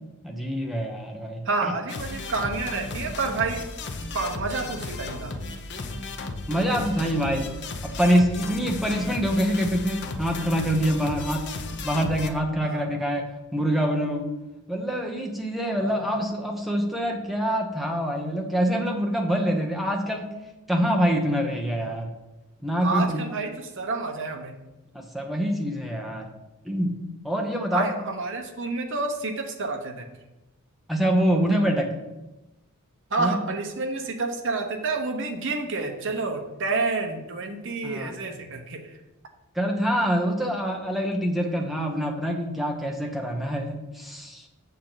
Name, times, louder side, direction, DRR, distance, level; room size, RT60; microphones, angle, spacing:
voice 1, 0.2-1.4 5.8-6.0 6.5-7.5 7.8-11.5 11.8-13.2 13.5-14.3 14.7-20.3 20.7-22.1 22.6-23.2 24.9-26.3 26.6-26.9 27.2-27.9 30.9-31.9 33.2-33.4 37.8-38.5 39.5-44.4, equal, ahead, 1 dB, 1.0 m, -25 dB
voice 2, 1.4-3.7 4.1-5.3 12.6-12.8 15.8-16.0 22.8-24.5 27.7-30.1 33.1-39.0, right 3 dB, 60° right, 4 dB, 1.0 m, -29 dB
sound 1, 1.9-12.3, left 3 dB, 50° left, 0.7 m, -35 dB
7.6 x 6.8 x 4.0 m, 1.0 s
head